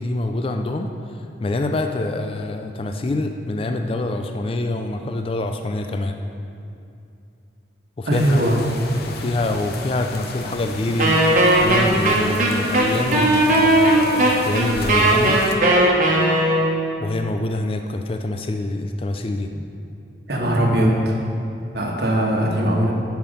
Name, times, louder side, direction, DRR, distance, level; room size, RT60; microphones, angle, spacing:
voice 1, 0.0-6.2 8.0-8.4 9.0-15.4 17.0-19.5, left 2 dB, 30° left, 5 dB, 0.3 m, -25 dB
sound 1, 8.1-15.6, left 3 dB, 55° left, 0.7 m, -34 dB
voice 2, 8.1-8.6 20.3-21.1 21.7-22.9, right 1 dB, 55° right, -1 dB, 1.3 m, -20 dB
Wind instrument woodwind instrument, 11.0-16.8, right 1 dB, 40° right, 1.2 m, -17 dB
8.9 x 5.8 x 5.2 m, 2.5 s
head